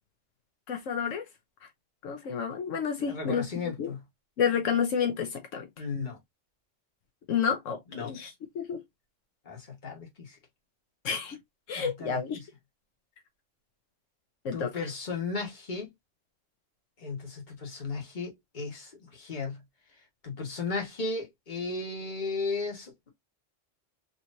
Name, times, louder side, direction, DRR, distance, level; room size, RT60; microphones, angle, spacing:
voice 1, 0.7-1.2 2.0-3.5 3.8-3.9 4.4-5.7 7.3-8.8 11.0-11.4 11.7-12.4 14.4-14.7, left 7 dB, 80° left, 1.1 m, -30 dB
voice 2, 3.0-4.0 5.8-6.2 7.9-8.1 9.4-10.4 11.7-12.5 14.5-15.9 17.0-19.6 20.2-23.1, left 3 dB, 40° left, 1.5 m, -35 dB
3.9 x 2.9 x 2.5 m
omnidirectional pair, 1.3 m